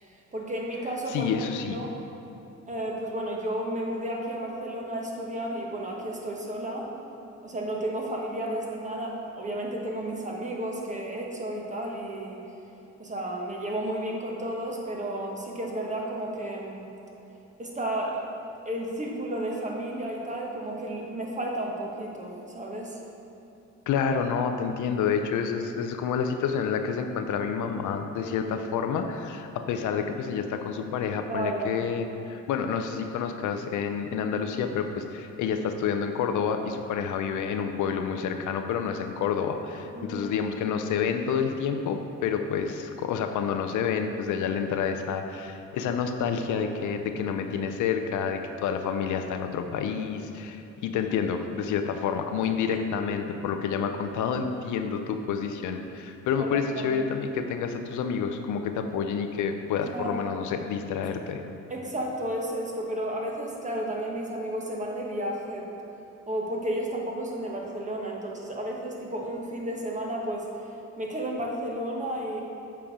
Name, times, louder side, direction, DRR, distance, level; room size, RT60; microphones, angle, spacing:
voice 1, 0.0-1.9 2.7-6.9 7.4-12.4 13.0-16.8 17.6-18.3 18.6-23.0 28.2-28.5 31.3-31.8 39.9-40.4 46.4-46.7 52.7-52.8 56.4-57.0 59.8-60.4 61.7-65.7 66.3-70.5 71.0-72.4, right 1 dB, 25° right, -1 dB, 1.3 m, -32 dB
voice 2, 1.1-1.9 23.9-61.4, left 6 dB, 80° left, 6 dB, 0.6 m, -29 dB
7.3 x 4.4 x 5.0 m, 3.0 s
cardioid pair, 90°, 30 cm